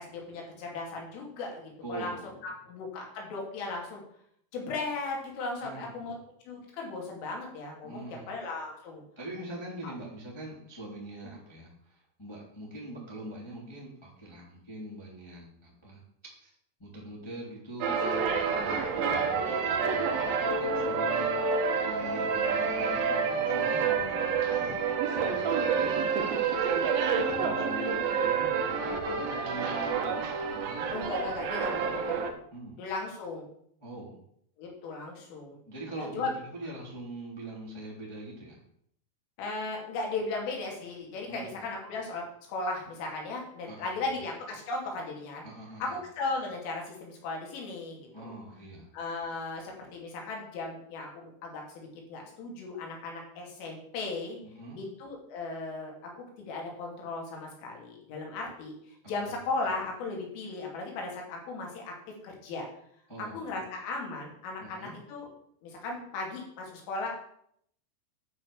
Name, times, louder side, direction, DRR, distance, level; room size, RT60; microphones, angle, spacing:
voice 1, 0.0-2.2 2.4-4.0 4.5-6.2 6.5-9.0 9.8-9.9 18.2-18.4 27.1-28.0 30.9-32.2 32.8-33.5 34.6-35.6 36.0-36.3 39.4-45.5 45.8-48.4 48.9-54.4 54.8-58.7 59.1-61.9 62.2-62.7 63.3-65.3 65.6-67.1, left 3 dB, 85° left, 0 dB, 5.3 m, -37 dB
voice 2, 1.8-2.4 5.6-6.1 7.8-8.3 9.1-16.0 16.4-16.5 16.8-24.9 25.3-25.9 27.2-30.9 32.5-32.8 33.8-34.2 35.7-38.6 41.2-41.6 43.6-44.0 45.4-46.0 48.1-48.9 54.4-54.8 59.0-59.3 63.1-63.5 64.6-65.0, right 1 dB, 5° left, -4 dB, 2.5 m, -43 dB
sound 1, 17.8-32.3, right 5 dB, 65° right, 2.6 m, -28 dB
12.0 x 6.0 x 7.1 m, 0.69 s
omnidirectional pair, 5.6 m